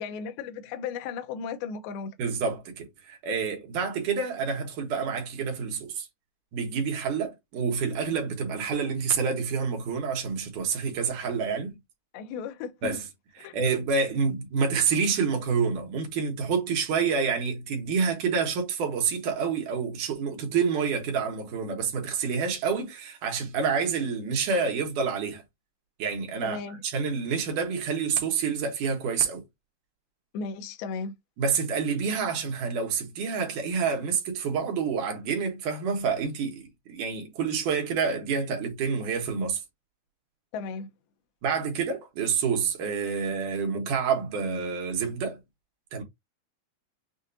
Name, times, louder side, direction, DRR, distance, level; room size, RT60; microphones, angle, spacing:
voice 1, 0.0-2.1 12.1-13.0 13.4-13.6 26.4-26.8 30.3-31.1 40.5-40.9, left 5 dB, 80° left, 2.5 m, -35 dB
voice 2, 2.2-6.1 6.5-11.8 12.8-13.0 13.4-25.4 26.0-29.4 31.4-39.6 41.4-45.4 45.9-46.0, right 5 dB, 65° right, 2.4 m, -28 dB
6.7 x 2.5 x 2.6 m
omnidirectional pair, 4.5 m